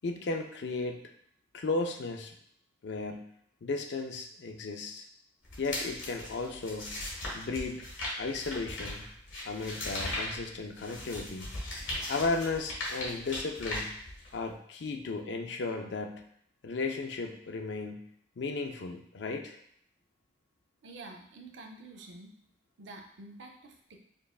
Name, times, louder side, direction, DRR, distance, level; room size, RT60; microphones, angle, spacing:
voice 1, 0.0-1.1 1.5-2.3 2.8-3.3 3.6-5.1 5.6-7.0 7.3-7.9 8.2-9.0 9.4-11.5 12.1-13.9 14.3-16.2 16.6-18.1 18.4-19.6, left 3 dB, 65° left, 4 dB, 0.4 m, -35 dB
sound 1, 5.4-14.5, left 1 dB, 85° left, 1.3 m, -38 dB
voice 2, 20.8-22.3 22.8-24.0, right 2 dB, 70° right, 3 dB, 0.5 m, -48 dB
5.2 x 2.4 x 2.3 m, 0.68 s
head